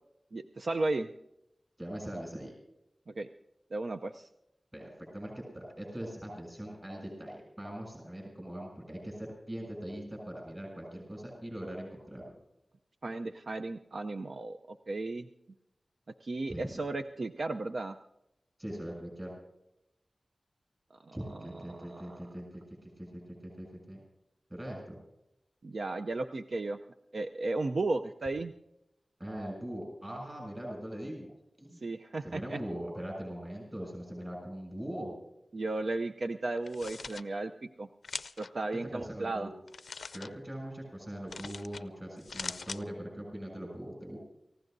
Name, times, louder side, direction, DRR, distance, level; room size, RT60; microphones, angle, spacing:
voice 1, 0.3-1.1 3.1-3.3 3.7-4.3 13.0-15.3 16.2-18.0 21.1-21.2 21.7-22.2 25.6-26.8 27.1-28.5 31.8-32.6 35.5-37.9 38.4-39.5, right 2 dB, 65° right, 6 dB, 0.6 m, -34 dB
voice 2, 1.8-2.6 4.7-12.3 16.5-16.6 18.6-19.3 21.1-24.0 24.5-25.0 29.2-31.3 31.6-31.8 32.2-35.1 38.8-39.5 40.1-44.2, equal, 20° right, -1 dB, 6.9 m, -41 dB
sound 1, 36.6-37.2 38.0-38.5 39.7-40.3 41.3-41.8 42.2-42.8, left 4 dB, 80° left, 0.5 m, -41 dB
29.5 x 15.5 x 2.7 m, 0.86 s
wide cardioid pair, 90°, 0 cm